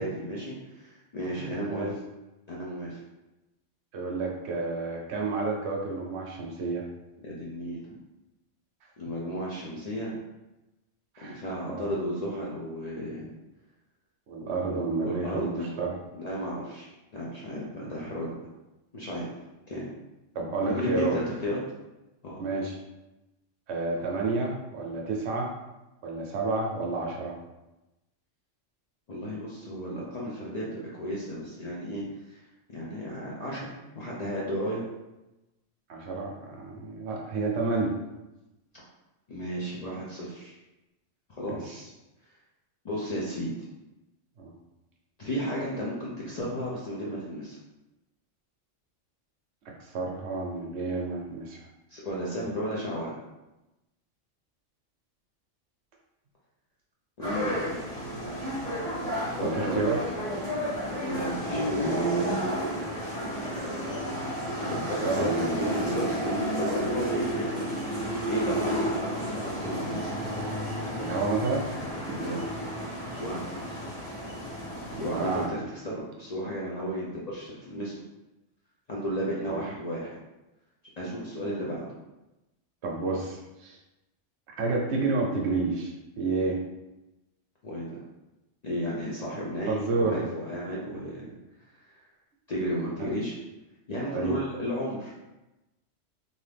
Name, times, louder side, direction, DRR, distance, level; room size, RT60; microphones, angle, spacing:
voice 1, 0.0-1.9 2.5-3.0 7.2-7.9 9.0-10.1 11.2-13.3 14.4-15.8 16.1-18.3 18.9-19.4 19.7-19.9 20.6-21.6 22.2-22.4 29.1-32.4 32.7-34.8 38.7-38.8 39.3-40.5 41.3-41.9 42.8-43.5 45.2-47.6 51.9-53.2 57.2-57.6 59.3-59.9 61.0-62.0 64.6-67.9 68.3-70.2 72.1-72.4 73.2-73.4 74.9-78.0 78.9-80.2 81.0-81.9 87.6-88.0 88.6-91.3 91.9-92.1 92.5-93.4 93.9-95.1, equal, 50° left, -5 dB, 0.5 m, -33 dB
voice 2, 1.3-1.9 3.9-6.9 11.2-11.9 14.3-16.0 20.3-21.2 22.4-22.8 23.7-25.5 26.0-27.4 35.9-38.0 41.5-41.6 44.4-44.5 49.9-51.6 59.4-60.0 65.0-65.4 71.0-71.7 72.1-72.2 74.9-75.5 79.5-79.7 82.8-83.8 84.5-85.9 86.2-86.6 89.7-90.2 94.1-94.4, right 3 dB, 70° right, 0 dB, 0.8 m, -30 dB
sound 1, 57.2-75.5, equal, 5° left, 1.2 m, -31 dB
2.7 x 2.6 x 3.3 m, 0.99 s
omnidirectional pair, 1.2 m